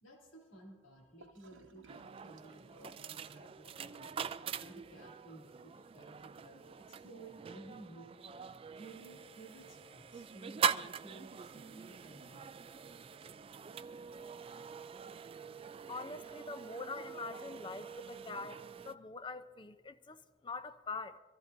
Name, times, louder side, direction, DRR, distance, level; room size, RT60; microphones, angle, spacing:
voice 1, 0.0-4.1 4.6-8.1 8.7-12.4, right 2 dB, 90° left, 3.2 m, -55 dB
Gurgling / Toilet flush, 1.2-5.2, right 3 dB, 80° right, 0.9 m, -63 dB
sound 1, 1.9-18.9, right 6 dB, 30° right, 0.3 m, -43 dB
voice 2, 15.9-21.2, left 4 dB, 25° left, 0.6 m, -44 dB
24.5 x 14.5 x 2.6 m
head